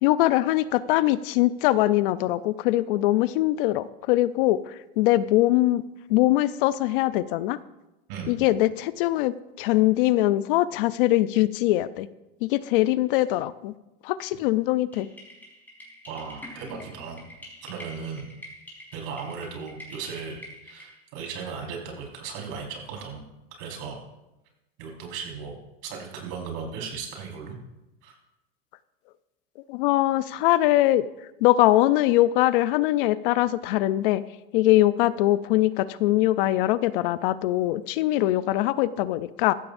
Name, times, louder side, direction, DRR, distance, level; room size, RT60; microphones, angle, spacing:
voice 1, 0.0-5.8 6.1-7.6 8.3-12.1 12.4-13.7 14.0-15.1 29.7-31.1 31.4-34.2 34.5-39.5, left 16 dB, 65° left, 15 dB, 0.7 m, -22 dB
sound 1, 14.9-21.1, left 1 dB, 5° left, 4.8 m, -46 dB
voice 2, 16.1-17.3 17.6-18.3 18.9-24.0 24.8-25.6 25.8-27.6 28.0-28.2, right 5 dB, 60° right, 0 dB, 4.9 m, -37 dB
15.0 x 15.0 x 2.7 m, 0.97 s
supercardioid pair, 125°, 29 cm